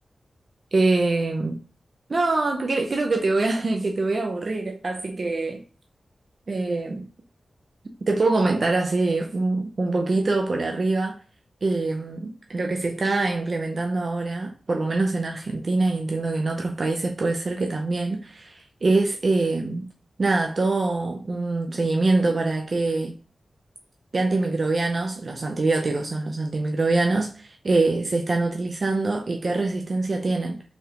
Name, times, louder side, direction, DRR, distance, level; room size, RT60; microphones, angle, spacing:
voice 1, 0.7-1.6 2.1-5.6 6.5-7.1 8.0-11.2 11.6-19.9 20.2-23.1 24.1-30.6, right 3 dB, 50° right, 0.4 m, -24 dB
3.4 x 2.3 x 2.7 m
wide cardioid pair, 75°, 0 cm